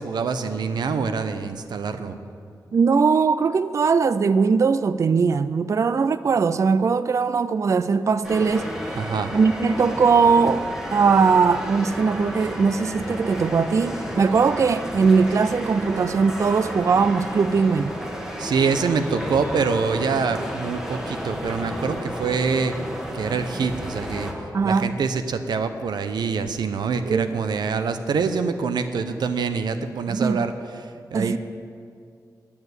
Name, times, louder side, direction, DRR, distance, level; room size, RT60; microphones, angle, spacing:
voice 1, 0.0-2.2 9.0-9.3 18.4-22.7 23.1-24.3 24.6-31.4, right 5 dB, 85° right, 0.7 m, -25 dB
voice 2, 2.7-8.7 9.3-17.9 24.5-24.9 27.1-27.3 30.1-30.4 31.1-31.4, right 5 dB, 45° right, 0.3 m, -20 dB
sound 1, 8.2-24.3, equal, 5° right, 1.6 m, -32 dB
9.7 x 7.1 x 8.1 m
cardioid pair, 75°, 7 cm